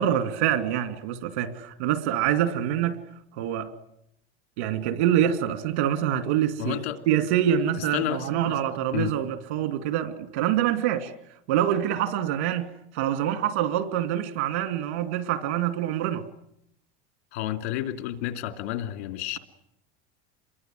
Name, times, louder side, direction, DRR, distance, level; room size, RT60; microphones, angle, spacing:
voice 1, 0.0-3.0 3.4-3.7 4.6-6.8 7.1-11.1 11.5-16.2, right 10 dB, 80° right, 2.7 m, -25 dB
voice 2, 6.6-7.0 7.9-8.6 8.9-9.1 17.3-19.4, left 13 dB, 85° left, 2.8 m, -30 dB
28.0 x 23.0 x 7.8 m
supercardioid pair, 95°, 32 cm